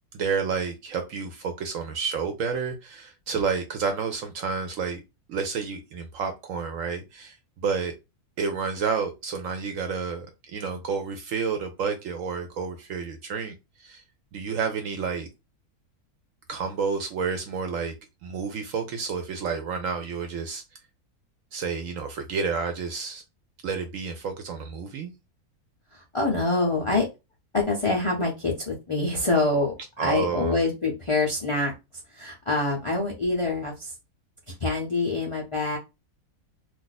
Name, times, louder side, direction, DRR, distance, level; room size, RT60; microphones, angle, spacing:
voice 1, 0.1-5.0 5.3-7.9 8.4-13.5 13.8-14.0 14.3-15.3 16.5-17.9 18.2-20.6 21.5-23.2 23.6-25.1 30.0-30.6, right 5 dB, 70° right, 0.9 m, -30 dB
voice 2, 25.9-27.1 27.5-31.7 32.1-33.9 34.5-35.8, left 3 dB, 55° left, 0.3 m, -25 dB
2.5 x 2.4 x 3.9 m
omnidirectional pair, 1.6 m